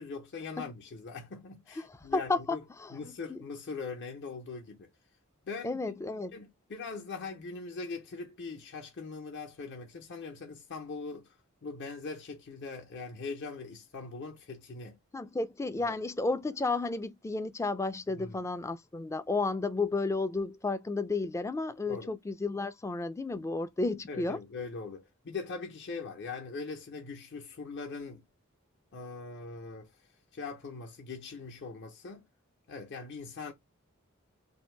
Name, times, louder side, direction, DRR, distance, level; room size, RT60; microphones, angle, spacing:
voice 1, 0.0-2.6 2.9-4.9 5.5-6.0 6.3-11.3 11.6-15.0 15.8-16.0 18.1-18.4 21.9-22.1 24.1-28.2 28.9-29.9 30.3-32.2 32.7-33.5, left 4 dB, 55° left, 0.7 m, -41 dB
voice 2, 2.1-3.0 3.3-3.4 5.6-6.3 15.1-24.4, left 3 dB, 15° left, 0.3 m, -32 dB
2.7 x 2.6 x 4.3 m
head